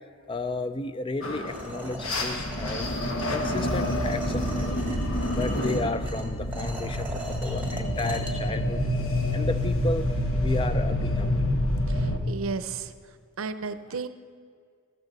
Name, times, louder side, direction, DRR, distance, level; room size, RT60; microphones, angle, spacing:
voice 1, 0.3-2.9 3.3-4.8 5.3-8.8 9.3-10.1 10.4-11.4, left 2 dB, 25° left, 11 dB, 0.4 m, -33 dB
sound 1, 1.2-12.2, left 1 dB, 85° left, 1.2 m, -28 dB
sound 2, 1.5-8.3, right 2 dB, 10° right, 1.5 m, -41 dB
voice 2, 11.9-12.9 13.4-14.1, right 4 dB, 85° right, 12 dB, 0.6 m, -33 dB
15.0 x 13.5 x 4.0 m, 2.1 s
head